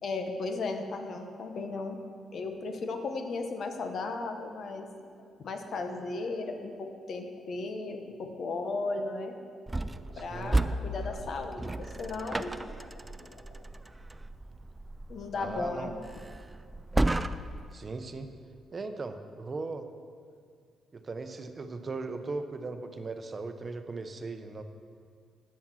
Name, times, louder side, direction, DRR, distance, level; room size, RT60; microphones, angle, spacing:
voice 1, 0.0-2.0 2.3-4.9 5.4-9.3 10.2-12.5 15.1-15.9, left 3 dB, 60° left, 5 dB, 1.1 m, -35 dB
sound 1, 4.9-13.6, left 2 dB, 90° left, 1.6 m, -56 dB
sound 2, 9.7-17.7, right 2 dB, 20° right, 0.3 m, -34 dB
voice 2, 10.1-10.7 15.3-15.9 17.7-18.3 18.7-19.9 20.9-24.6, right 3 dB, 35° right, 8 dB, 0.8 m, -38 dB
8.7 x 7.2 x 6.1 m, 2.1 s
cardioid pair, 90°, 0 cm